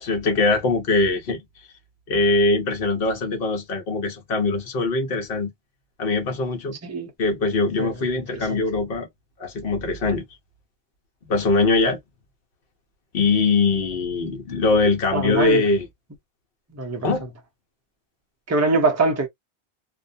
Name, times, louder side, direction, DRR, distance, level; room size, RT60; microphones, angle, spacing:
voice 1, 0.0-1.4 2.1-5.5 6.0-6.8 7.2-9.1 9.4-10.2 11.2-12.0 13.1-15.9 17.0-17.3, left 3 dB, 60° left, 1.1 m, -22 dB
voice 2, 15.1-15.6 16.7-17.1 18.5-19.3, right 3 dB, 20° right, 0.6 m, -22 dB
2.5 x 2.2 x 2.6 m
omnidirectional pair, 1.2 m